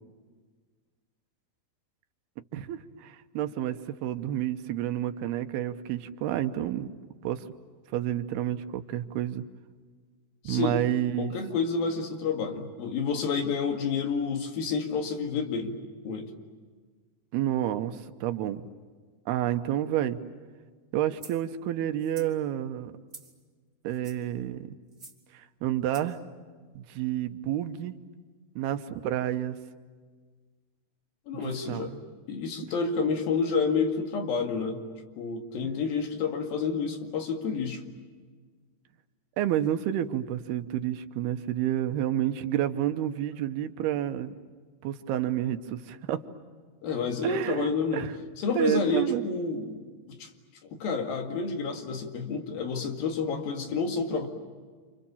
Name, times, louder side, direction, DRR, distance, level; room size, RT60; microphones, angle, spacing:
voice 1, 2.5-6.9 7.2-7.4 7.9-9.4 10.4-11.3 17.3-18.6 19.3-20.2 20.9-22.9 23.8-24.7 25.3-26.2 26.7-27.9 28.6-29.6 31.7-32.0 35.6-35.8 39.4-44.4 44.8-46.2 47.2-48.1 48.6-49.2, right 11 dB, 85° right, 9 dB, 3.0 m, -29 dB
voice 2, 10.5-10.8 11.2-15.8 16.0-16.3 31.3-32.0 32.3-34.8 35.2-37.8 46.8-48.1 48.4-50.3 50.6-54.3, left 5 dB, 70° left, 4 dB, 3.9 m, -29 dB
sound 1, 21.2-21.4 22.0-22.3 23.1-23.4 23.9-24.3 24.9-25.2 25.9-26.2, right 3 dB, 25° right, 2.0 m, -48 dB
29.0 x 28.0 x 7.1 m, 1.5 s
omnidirectional pair, 4.5 m